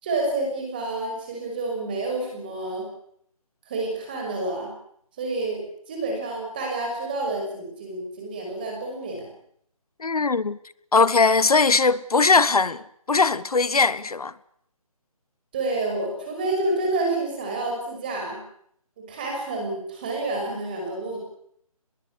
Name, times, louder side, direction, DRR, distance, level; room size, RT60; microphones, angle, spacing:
voice 1, 0.0-2.9 3.7-4.7 5.2-9.3 15.5-18.4 19.0-21.2, right 2 dB, 15° right, 5.9 m, -29 dB
voice 2, 10.0-10.6 10.9-12.8 13.1-14.3, left 4 dB, 80° left, 1.3 m, -20 dB
24.0 x 21.5 x 8.5 m
hypercardioid pair, 180°, 19 cm